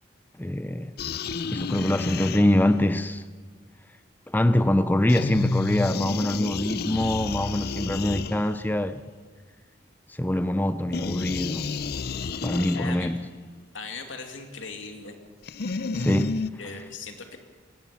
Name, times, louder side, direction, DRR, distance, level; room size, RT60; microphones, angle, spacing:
voice 1, 0.4-0.9 1.5-3.2 4.3-9.0 10.1-11.7 12.4-13.2 16.0-16.4, left 1 dB, 10° left, 0.5 m, -24 dB
sound 1, 1.0-2.9 5.1-8.8 10.9-13.2 15.4-16.5, left 4 dB, 55° left, 0.5 m, -31 dB
voice 2, 12.7-13.1 13.7-15.2 16.6-17.4, left 4 dB, 90° left, 2.7 m, -38 dB
20.5 x 17.5 x 7.2 m
head